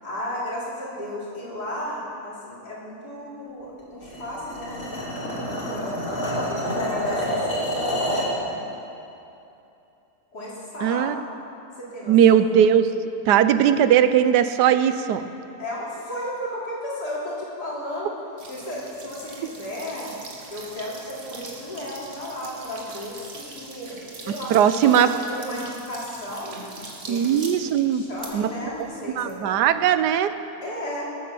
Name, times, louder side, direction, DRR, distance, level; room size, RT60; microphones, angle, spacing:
voice 1, 0.0-6.2 6.5-8.6 10.3-11.1 11.8-12.4 15.6-18.1 18.5-20.1 20.5-26.6 27.0-27.3 27.8-29.6 30.6-31.0, left 1 dB, 70° left, -6 dB, 4.0 m, -34 dB
sound 1, 4.0-8.4, equal, 45° left, 3.3 m, -28 dB
voice 2, 10.8-11.2 12.1-12.9 13.3-15.2 24.5-25.1 27.1-28.0 28.3-28.5 29.2-30.3, right 9 dB, 80° right, 11 dB, 1.2 m, -18 dB
sound 2, 18.4-30.0, right 3 dB, 45° right, 1.8 m, -42 dB
19.0 x 8.7 x 6.9 m, 2.8 s
omnidirectional pair, 1.8 m